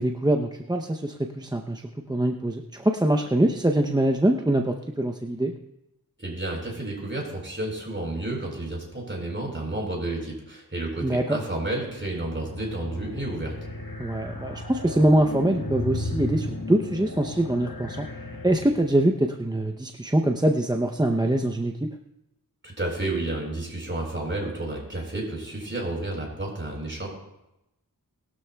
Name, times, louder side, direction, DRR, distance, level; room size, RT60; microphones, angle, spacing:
voice 1, 0.0-1.8 2.1-5.5 11.0-11.4 14.0-18.1 18.4-21.9, right 1 dB, 10° right, 3 dB, 0.6 m, -23 dB
voice 2, 6.2-13.6 22.6-27.1, right 2 dB, 30° right, -2 dB, 4.8 m, -31 dB
sound 1, 11.9-19.2, left 2 dB, 65° left, 1.7 m, -35 dB
20.5 x 12.5 x 2.3 m, 0.91 s
wide cardioid pair, 75°, 36 cm